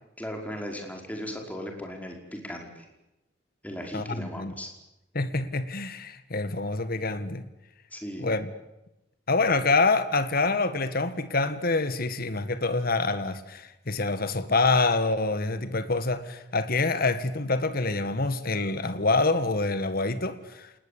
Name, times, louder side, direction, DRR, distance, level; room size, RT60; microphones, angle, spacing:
voice 1, 0.2-2.9 3.6-4.7 7.9-8.2, equal, 10° left, 5.3 m, -37 dB
voice 2, 3.9-4.5 5.1-7.4 8.2-8.5 9.3-20.7, left 3 dB, 55° left, 1.8 m, -26 dB
27.5 x 20.0 x 8.6 m
head